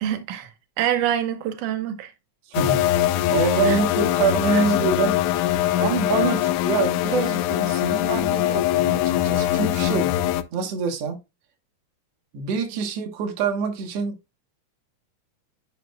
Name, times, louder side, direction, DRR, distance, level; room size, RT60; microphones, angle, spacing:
voice 1, 0.0-0.5 0.8-2.1 3.6-3.8 4.5-4.6, right 10 dB, 85° right, 2.4 m, -26 dB
sound 1, 2.5-10.4, left 13 dB, 85° left, 2.0 m, -22 dB
voice 2, 2.5-5.2 5.8-10.2 10.5-11.2 12.3-14.2, right 5 dB, 60° right, 2.2 m, -26 dB
11.0 x 5.5 x 2.2 m
omnidirectional pair, 3.5 m